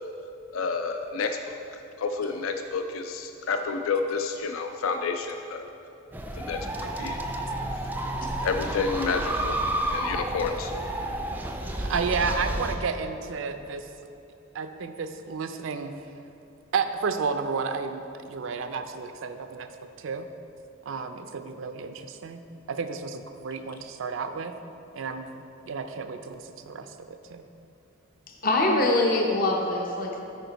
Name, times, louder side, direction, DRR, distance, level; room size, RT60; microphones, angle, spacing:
voice 1, 0.5-1.6 2.0-5.7 6.4-6.6 7.0-7.2 8.4-9.6 9.9-10.7, left 4 dB, 85° left, 6 dB, 0.4 m, -29 dB
sound 1, 6.1-12.8, right 1 dB, 10° right, 0.3 m, -31 dB
voice 2, 11.8-13.9 14.5-15.9 16.7-19.7 20.0-20.3 20.9-22.4 22.7-24.5 24.9-27.4, right 5 dB, 70° right, 8 dB, 0.4 m, -32 dB
voice 3, 28.4-30.2, left 2 dB, 45° left, 1 dB, 0.6 m, -23 dB
8.9 x 5.0 x 4.0 m, 2.9 s
head